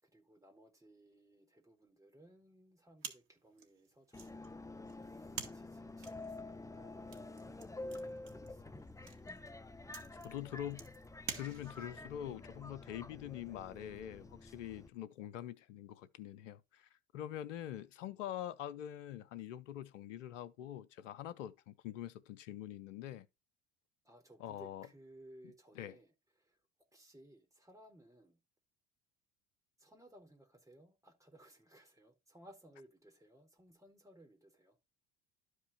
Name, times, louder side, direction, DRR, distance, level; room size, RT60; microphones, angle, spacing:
voice 1, 0.0-4.7 5.0-8.8 24.0-26.6 26.9-28.4 29.8-34.8, right 1 dB, 10° right, 4.4 m, -61 dB
sound 1, 3.0-12.0, right 7 dB, 70° right, 2.3 m, -50 dB
Subway metro underground, 4.1-14.9, left 2 dB, 10° left, 0.9 m, -49 dB
voice 2, 10.2-10.9 11.3-23.3 24.4-24.9 25.7-26.0, left 11 dB, 85° left, 0.8 m, -45 dB
12.0 x 4.9 x 4.2 m
hypercardioid pair, 70°, 36 cm